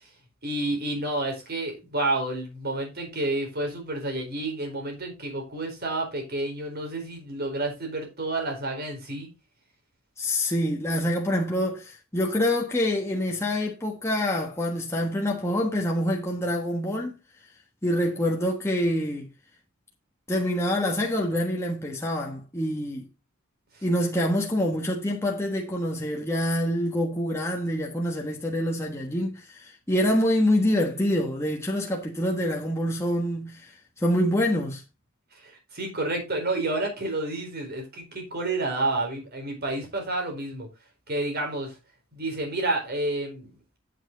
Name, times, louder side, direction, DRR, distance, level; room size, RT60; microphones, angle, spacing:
voice 1, 0.4-9.3 35.4-40.7 41.1-41.7 42.1-43.5, right 2 dB, 50° right, 4.4 m, -30 dB
voice 2, 10.2-17.2 17.8-19.3 20.3-23.1 23.8-33.7 34.0-34.8, left 1 dB, 15° left, 1.3 m, -26 dB
9.1 x 7.4 x 3.9 m
head